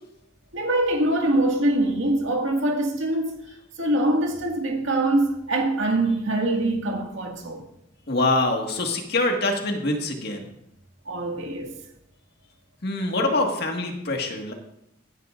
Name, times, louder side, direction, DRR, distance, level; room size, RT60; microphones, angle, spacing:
voice 1, 0.5-3.4 3.8-7.7 11.1-11.7, right 1 dB, 80° right, 2.1 m, -24 dB
voice 2, 8.1-10.4 12.8-14.5, left 2 dB, 55° left, 1.8 m, -24 dB
16.5 x 11.0 x 2.6 m
head